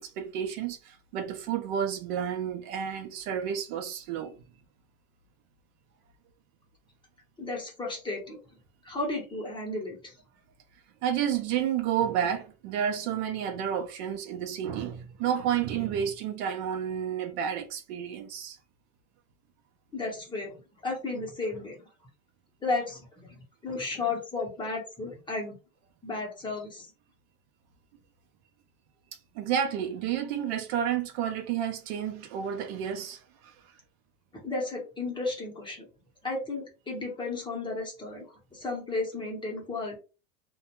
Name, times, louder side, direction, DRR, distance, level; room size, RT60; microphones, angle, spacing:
voice 1, 0.0-4.3 11.0-18.6 29.1-33.7, right 9 dB, 55° right, 0.5 m, -31 dB
voice 2, 7.4-8.4 8.8-10.2 19.9-20.5 20.8-21.8 22.6-23.3 23.6-25.6 26.0-26.9 34.3-35.9 36.2-40.0, left 3 dB, 10° left, 0.8 m, -33 dB
2.4 x 2.2 x 2.9 m
supercardioid pair, 140°, 39 cm